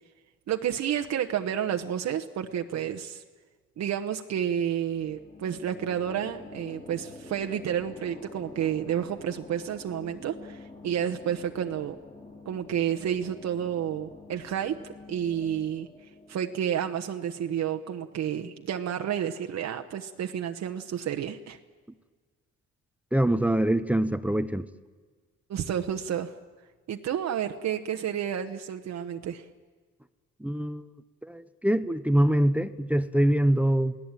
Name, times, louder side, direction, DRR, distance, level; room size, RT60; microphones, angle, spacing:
voice 1, 0.5-3.2 3.8-11.9 12.4-14.8 15.1-15.9 16.3-21.6 25.5-26.3 26.9-29.5, right 9 dB, 65° right, 5 dB, 1.1 m, -30 dB
sound 1, 4.9-18.3, left 2 dB, 25° left, 3.4 m, -48 dB
voice 2, 23.1-24.6 30.4-30.9 31.2-34.0, right 1 dB, 5° right, 13 dB, 0.7 m, -24 dB
28.5 x 18.0 x 9.0 m, 1.4 s
cardioid pair, 125°, 29 cm